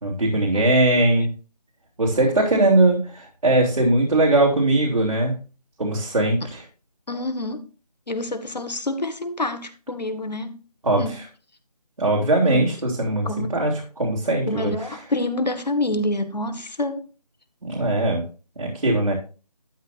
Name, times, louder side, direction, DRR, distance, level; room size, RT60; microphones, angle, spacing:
voice 1, 0.0-1.3 2.0-5.4 5.8-6.6 10.8-11.2 12.0-15.0 17.6-18.2 18.6-19.1, right 2 dB, 65° right, 3.1 m, -20 dB
voice 2, 7.1-7.6 8.1-10.5 11.0-11.1 12.5-12.7 13.2-13.5 14.5-17.1, left 2 dB, 85° left, 1.8 m, -27 dB
12.0 x 8.3 x 2.6 m
figure-of-eight pair, 165°, 21 cm